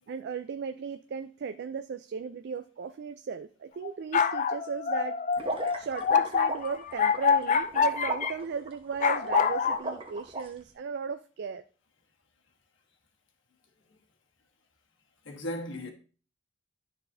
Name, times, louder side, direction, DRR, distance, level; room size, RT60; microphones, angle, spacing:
voice 1, 0.1-5.2 5.8-11.6, right 6 dB, 55° right, 0.3 m, -36 dB
sound 1, 3.8-8.3 9.0-9.8, left 6 dB, 35° left, 0.4 m, -26 dB
sound 2, 5.4-10.4, right 2 dB, 25° right, 1.0 m, -35 dB
voice 2, 15.2-15.9, left 1 dB, 65° left, 1.2 m, -36 dB
12.0 x 4.2 x 2.6 m
head